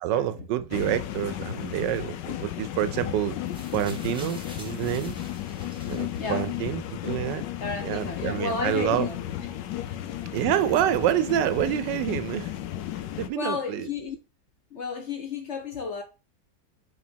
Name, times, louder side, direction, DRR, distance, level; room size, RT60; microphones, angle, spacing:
voice 1, 0.0-3.4 3.7-5.2 5.9-7.5 7.8-9.1 10.3-12.5 13.2-13.9, right 11 dB, 80° right, 1.2 m, -27 dB
sound 1, 0.7-13.3, left 12 dB, 80° left, 1.3 m, -34 dB
sound 2, 3.5-6.7 7.6-7.7, equal, 5° right, 1.0 m, -47 dB
voice 2, 6.1-6.5 7.6-9.5 9.8-10.3 13.3-14.2 14.7-16.0, left 4 dB, 50° left, 1.0 m, -33 dB
6.3 x 3.4 x 4.4 m
omnidirectional pair, 1.9 m